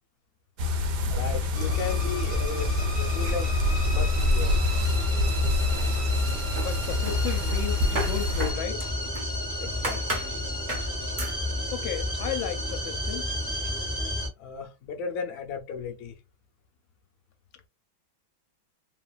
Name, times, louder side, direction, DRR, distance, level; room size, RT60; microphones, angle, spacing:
sound 1, 0.6-8.5, left 2 dB, 70° right, 1.1 m, -26 dB
voice 1, 1.1-3.6 3.9-4.5 9.6-10.2 14.4-16.2, left 5 dB, 65° left, 1.0 m, -35 dB
sound 2, 1.5-14.3, left 1 dB, 20° left, 0.5 m, -31 dB
sound 3, 5.4-6.2 6.6-9.4 9.8-10.3 10.7-10.9 11.2-11.4, right 1 dB, 55° right, 0.4 m, -35 dB
voice 2, 6.6-8.8 11.7-13.3, left 10 dB, 85° left, 1.4 m, -34 dB
3.2 x 2.3 x 2.3 m
omnidirectional pair, 2.1 m